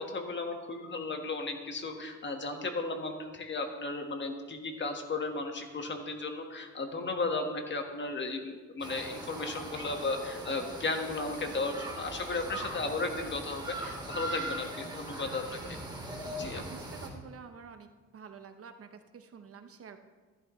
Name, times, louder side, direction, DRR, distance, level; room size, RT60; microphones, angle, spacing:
voice 1, 0.0-15.8 16.3-16.6, left 3 dB, 40° left, 4 dB, 1.6 m, -35 dB
sound 1, 8.8-17.1, right 1 dB, 15° right, 2.5 m, -40 dB
voice 2, 16.2-17.9 18.1-20.0, right 6 dB, 50° right, 8 dB, 0.9 m, -49 dB
14.0 x 11.0 x 3.2 m, 1.4 s
cardioid pair, 90°, 30 cm